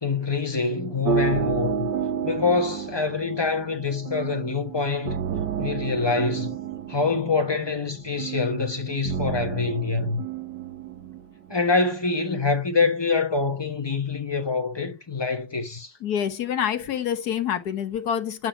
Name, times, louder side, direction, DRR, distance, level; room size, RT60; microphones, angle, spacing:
voice 1, 0.0-1.9 2.2-5.2 5.6-6.6 6.9-10.2 11.5-15.9, left 4 dB, 20° left, 0.9 m, -25 dB
sound 1, 0.6-11.8, right 7 dB, 70° right, 1.7 m, -31 dB
voice 2, 16.0-18.5, left 9 dB, 60° left, 1.6 m, -27 dB
9.1 x 6.1 x 5.7 m
omnidirectional pair, 1.9 m